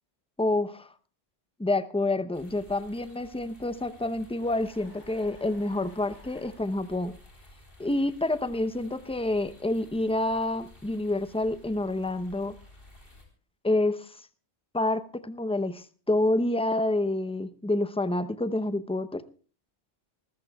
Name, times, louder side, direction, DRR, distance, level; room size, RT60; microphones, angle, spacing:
voice 1, 0.4-0.9 1.6-7.1 7.8-12.5 13.6-14.2 14.7-19.2, left 2 dB, 5° left, 13 dB, 0.5 m, -28 dB
sound 1, 2.3-13.2, left 1 dB, 50° left, 4.1 m, -54 dB
sound 2, 4.4-6.6, equal, 75° left, 8.3 m, -55 dB
25.0 x 14.5 x 2.3 m, 0.39 s
omnidirectional pair, 1.2 m